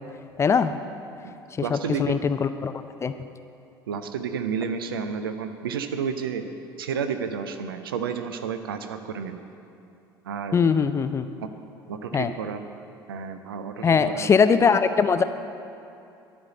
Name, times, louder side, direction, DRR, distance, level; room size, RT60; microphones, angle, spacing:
voice 1, 0.4-0.8 1.7-2.7 3.0-3.1 10.5-11.2 12.1-12.3 13.8-15.2, left 6 dB, 20° left, 11 dB, 0.4 m, -21 dB
voice 2, 1.2-2.1 3.9-6.4 6.8-9.5 10.3-10.6 11.9-12.6 13.1-14.3, right 6 dB, 70° right, 8 dB, 0.5 m, -31 dB
11.0 x 5.2 x 7.7 m, 2.6 s
figure-of-eight pair, 65°, 12 cm